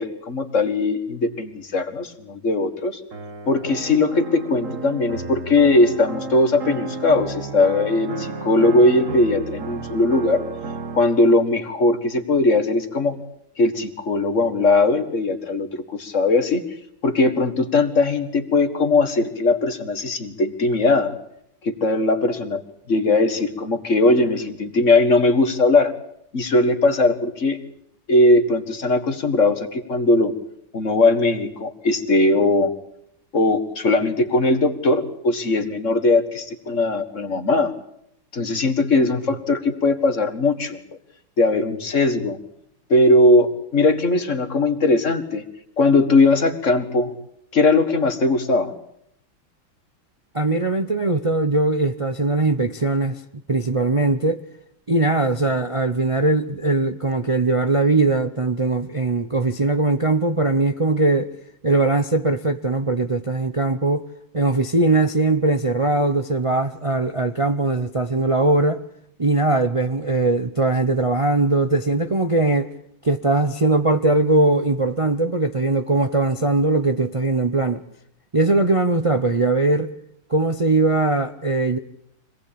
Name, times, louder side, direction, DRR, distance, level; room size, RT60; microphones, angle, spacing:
voice 1, 0.0-3.0 3.5-10.4 10.9-13.2 13.6-16.6 17.0-21.1 21.6-22.6 22.9-25.9 26.3-27.6 28.1-30.3 30.7-32.7 33.3-37.7 38.3-40.8 41.4-42.4 42.9-45.4 45.8-47.1 47.5-48.7, left 2 dB, 40° left, 2.0 m, -19 dB
sound 1, 3.1-11.1, right 4 dB, 40° right, 1.7 m, -33 dB
voice 2, 50.3-53.2 53.5-54.4 54.9-61.3 61.6-64.0 64.3-68.8 69.2-72.7 73.0-77.8 78.3-79.9 80.3-81.8, right 2 dB, 60° right, 0.3 m, -20 dB
25.5 x 19.0 x 8.7 m
omnidirectional pair, 2.3 m